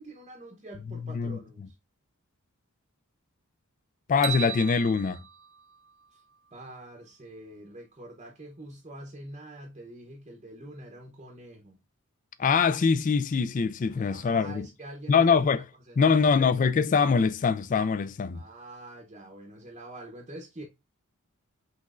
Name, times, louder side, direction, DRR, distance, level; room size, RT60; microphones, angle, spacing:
voice 1, 0.0-1.7 6.1-6.2 6.5-11.7 13.9-15.2 15.9-16.2 18.3-20.6, right 1 dB, 30° right, 0.8 m, -45 dB
voice 2, 4.1-5.2 12.4-14.6 15.1-15.7 16.0-18.4, left 5 dB, 35° left, 0.3 m, -23 dB
sound 1, 4.2-6.5, right 10 dB, 55° right, 0.5 m, -37 dB
6.1 x 3.1 x 2.4 m
head